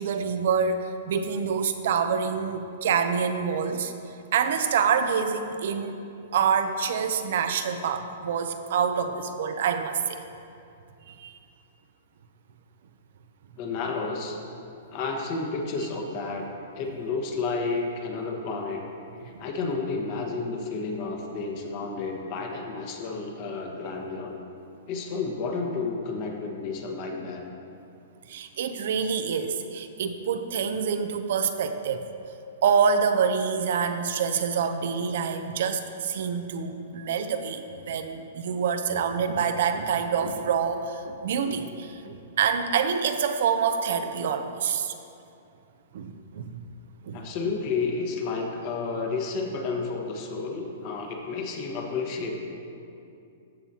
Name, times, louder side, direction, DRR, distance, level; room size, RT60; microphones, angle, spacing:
voice 1, 0.0-3.9 4.3-5.9 6.3-10.2 11.1-11.4 28.3-32.1 32.6-44.9 45.9-46.6 47.0-47.2, right 6 dB, 65° right, 8 dB, 0.6 m, -26 dB
voice 2, 13.6-14.4 14.9-16.5 16.7-18.8 19.2-24.4 24.9-27.4 47.1-52.3, left 4 dB, 45° left, 1 dB, 1.4 m, -31 dB
14.0 x 7.4 x 2.9 m, 2.6 s
hypercardioid pair, 150°, 0 cm